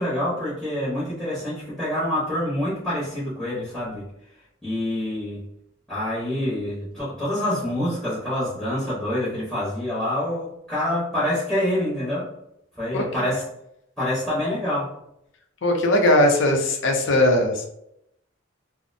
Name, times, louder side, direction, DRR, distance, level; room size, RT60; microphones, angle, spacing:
voice 1, 0.0-4.1 4.6-5.5 5.9-12.3 12.7-13.4 14.0-14.9, left 1 dB, ahead, -11 dB, 0.7 m, -26 dB
voice 2, 15.6-17.7, left 1 dB, 65° left, 3 dB, 0.5 m, -19 dB
2.6 x 2.0 x 2.6 m, 0.79 s
head